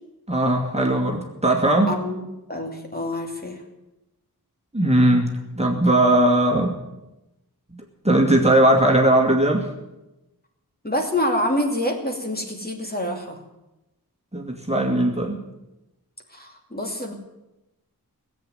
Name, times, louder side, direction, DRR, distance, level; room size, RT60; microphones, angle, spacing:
voice 1, 0.3-1.9 4.7-6.8 8.0-9.7 14.3-15.4, right 1 dB, 15° right, 0 dB, 2.2 m, -19 dB
voice 2, 1.9-3.6 10.8-13.4 16.3-17.1, left 1 dB, 25° left, 1 dB, 2.6 m, -27 dB
17.5 x 8.2 x 9.3 m, 0.96 s
wide cardioid pair, 60°, 38 cm